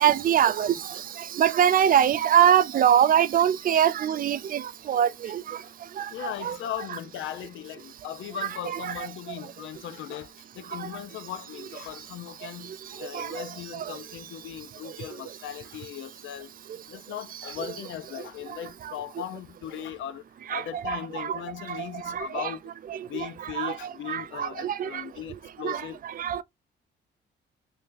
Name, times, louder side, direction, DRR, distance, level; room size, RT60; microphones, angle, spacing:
voice 1, 0.0-0.7 1.4-4.6 4.9-5.4 6.0-6.1 6.4-6.6 8.6-8.9 13.1-13.4 20.5-21.4 21.7-21.8 22.1-22.5 23.6-23.7 24.1-24.9 25.6-25.8 26.2-26.4, right 9 dB, 45° right, 0.4 m, -23 dB
voice 2, 5.2-5.7 6.1-16.5 16.9-22.6 22.9-26.0, left 11 dB, 75° left, 0.5 m, -38 dB
3.2 x 2.7 x 3.7 m
cardioid pair, 90°, 20 cm